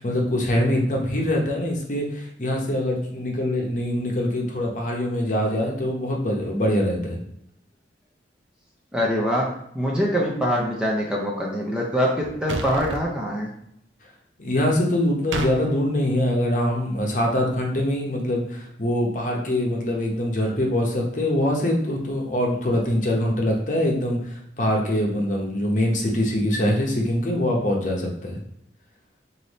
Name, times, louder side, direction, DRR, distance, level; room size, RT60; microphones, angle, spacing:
voice 1, 0.0-7.2 14.4-24.2 24.6-28.4, left 1 dB, 45° left, 0 dB, 0.8 m, -23 dB
voice 2, 8.9-13.5, equal, 5° right, -3 dB, 0.5 m, -24 dB
sound 1, 12.5-13.0 15.3-15.5, right 2 dB, 85° right, 0.5 m, -29 dB
3.3 x 2.7 x 4.0 m, 0.75 s
head